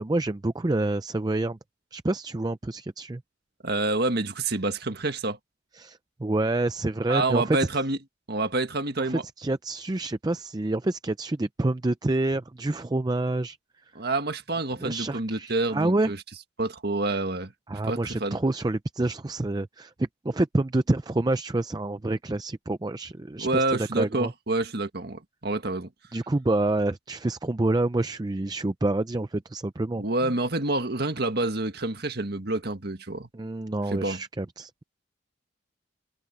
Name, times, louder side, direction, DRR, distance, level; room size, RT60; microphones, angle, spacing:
voice 1, 0.0-1.6 1.9-3.2 5.7-7.6 9.0-13.6 14.8-16.1 17.7-23.6 23.9-24.3 26.1-30.0 33.3-34.8, right 2 dB, 20° right, 0.5 m, -27 dB
voice 2, 3.6-5.4 7.1-8.0 8.3-9.2 14.0-16.2 16.6-17.5 17.9-18.4 23.4-25.9 30.0-33.3 33.9-34.2, right 2 dB, 55° right, 1.8 m, -28 dB
head